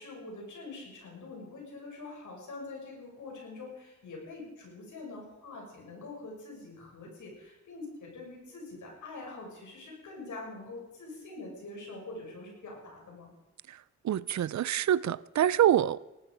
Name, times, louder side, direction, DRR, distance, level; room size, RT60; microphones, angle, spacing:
voice 1, 0.0-13.3, left 3 dB, 90° left, 6.8 m, -44 dB
voice 2, 13.7-16.0, right 11 dB, 70° right, 0.5 m, -26 dB
18.5 x 13.0 x 5.0 m
wide cardioid pair, 95°, 29 cm